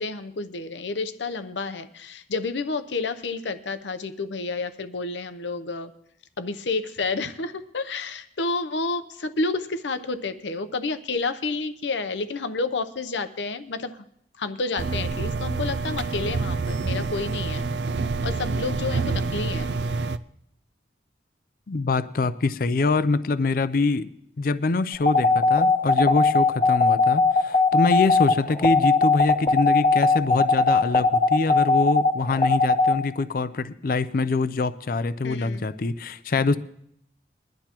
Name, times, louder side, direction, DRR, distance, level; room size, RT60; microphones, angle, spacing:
voice 1, 0.0-5.9 6.4-14.0 14.4-17.6 18.2-19.7 35.2-35.6, left 3 dB, 85° left, 11 dB, 0.8 m, -30 dB
sound 1, 14.8-20.2, right 4 dB, 75° right, 0.4 m, -27 dB
voice 2, 21.7-24.1 24.4-36.6, left 3 dB, 50° left, 14 dB, 0.5 m, -24 dB
sound 2, 25.0-32.9, left 3 dB, 25° left, 0.9 m, -19 dB
22.0 x 11.5 x 3.0 m, 0.73 s
head